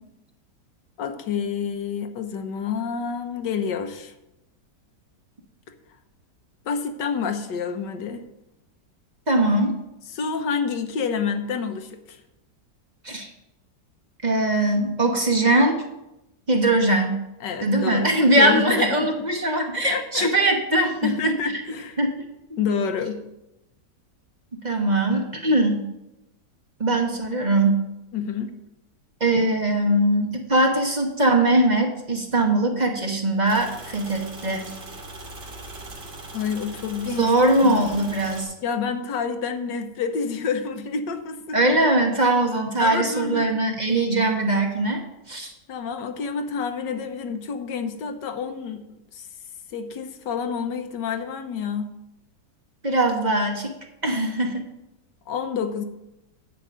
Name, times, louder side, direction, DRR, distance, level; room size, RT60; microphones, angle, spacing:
voice 1, 1.0-4.1 6.6-8.2 10.1-12.2 17.4-19.1 19.8-20.3 21.0-22.0 22.6-23.2 28.1-28.5 36.3-37.3 37.6-38.1 38.6-41.6 42.8-43.5 45.7-49.3 49.7-51.9 55.3-55.8, left 6 dB, 80° left, 7 dB, 1.6 m, -28 dB
voice 2, 9.3-9.8 13.0-13.3 14.2-15.8 16.5-17.2 17.6-21.3 22.0-22.1 22.5-22.6 24.6-25.8 26.8-27.8 29.2-34.7 37.2-38.5 41.5-45.5 52.8-53.7 54.0-54.6, right 1 dB, 30° right, 2 dB, 1.1 m, -21 dB
sound 1, 33.5-38.4, right 2 dB, 80° right, 2.7 m, -40 dB
10.0 x 5.3 x 7.5 m, 0.90 s
omnidirectional pair, 1.9 m